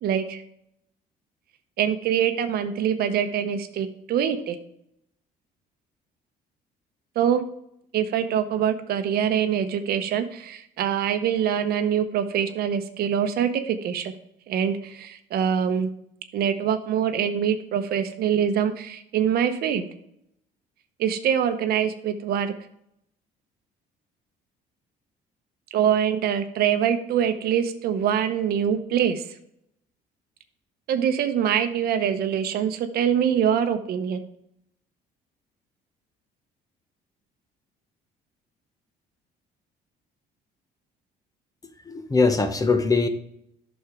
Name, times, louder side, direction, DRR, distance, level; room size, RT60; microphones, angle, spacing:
voice 1, 0.0-0.4 1.8-4.6 7.2-7.4 7.9-14.1 14.5-15.9 16.3-19.9 21.0-22.5 25.7-29.2 30.9-34.2, right 8 dB, 65° right, 9 dB, 0.8 m, -24 dB
voice 2, 41.9-43.1, left 4 dB, 20° left, 8 dB, 0.9 m, -21 dB
9.0 x 6.3 x 3.6 m, 0.74 s
cardioid pair, 110°, 17 cm